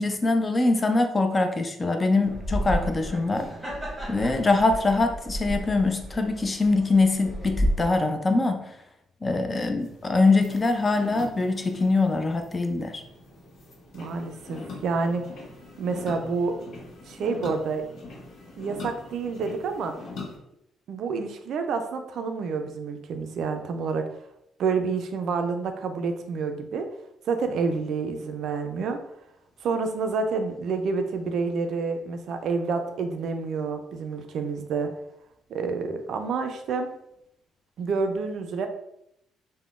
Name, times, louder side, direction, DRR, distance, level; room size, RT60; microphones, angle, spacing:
voice 1, 0.0-3.5 4.1-8.6 9.2-13.0, left 3 dB, 25° left, 5 dB, 0.4 m, -23 dB
sound 1, 2.2-7.7, equal, 5° right, 1.0 m, -31 dB
sound 2, 9.8-20.4, left 3 dB, 65° left, 0.8 m, -43 dB
voice 2, 13.9-15.3 15.8-16.6 17.1-17.8 18.6-19.9 20.9-24.1 24.6-26.9 27.3-29.0 29.6-34.9 35.5-36.9 37.8-38.7, right 4 dB, 65° right, 6 dB, 0.3 m, -28 dB
3.6 x 2.1 x 2.4 m, 0.79 s
cardioid pair, 110°, 0 cm